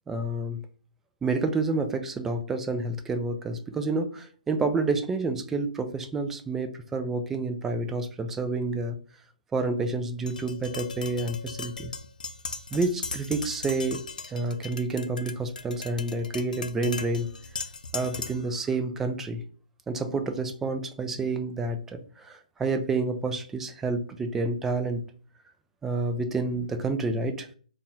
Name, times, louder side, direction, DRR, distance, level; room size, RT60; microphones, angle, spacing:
voice 1, 0.1-0.6 1.2-9.0 9.5-11.9 12.7-14.0 14.3-17.3 17.9-19.4 19.9-25.0 25.8-27.5, right 3 dB, 5° right, 8 dB, 0.3 m, -29 dB
Tap, 10.3-18.5, left 4 dB, 80° left, 0.4 m, -38 dB
4.0 x 2.3 x 2.7 m, 0.43 s
hypercardioid pair, 150°, 4 cm